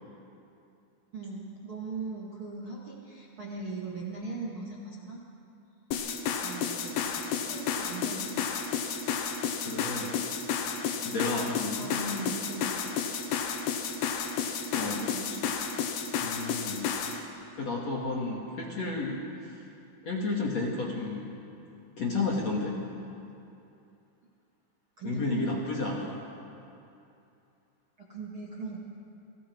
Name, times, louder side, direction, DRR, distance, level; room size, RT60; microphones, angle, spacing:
voice 1, 1.1-5.2 6.4-8.4 11.8-12.7 14.6-15.6 25.0-25.5 28.0-28.8, right 3 dB, 40° right, -5 dB, 2.2 m, -39 dB
sound 1, 5.9-17.2, left 6 dB, 80° left, 3.8 m, -32 dB
voice 2, 9.6-10.2 11.0-11.9 14.7-15.0 16.2-16.9 17.6-19.6 20.0-21.3 22.0-22.8 25.0-26.2, left 3 dB, 45° left, -3 dB, 2.7 m, -32 dB
30.0 x 23.5 x 4.7 m, 2.7 s
omnidirectional pair, 5.4 m